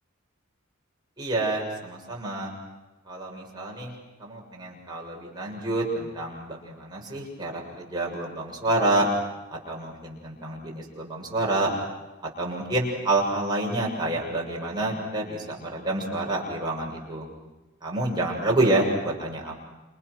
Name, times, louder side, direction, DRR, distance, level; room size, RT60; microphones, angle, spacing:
voice 1, 1.2-2.6 3.1-3.9 4.2-9.1 9.5-11.7 12.4-17.3 17.8-19.6, right 2 dB, 20° right, -2 dB, 7.1 m, -28 dB
29.5 x 28.5 x 6.4 m, 1.1 s
head